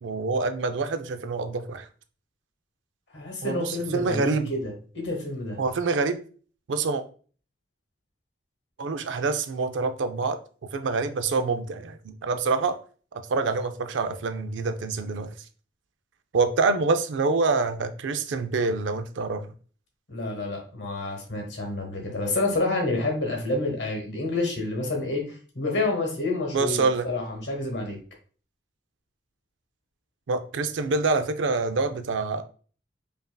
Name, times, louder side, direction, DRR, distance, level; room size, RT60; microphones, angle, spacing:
voice 1, 0.0-1.9 3.4-4.5 5.6-6.2 6.7-7.0 8.8-10.4 10.7-12.8 13.3-15.3 16.3-19.5 26.5-27.1 30.3-32.4, right 4 dB, 85° right, 10 dB, 0.4 m, -26 dB
voice 2, 3.1-5.6 20.1-28.0, left 2 dB, 70° left, 1 dB, 1.2 m, -29 dB
5.2 x 2.6 x 2.2 m, 0.41 s
head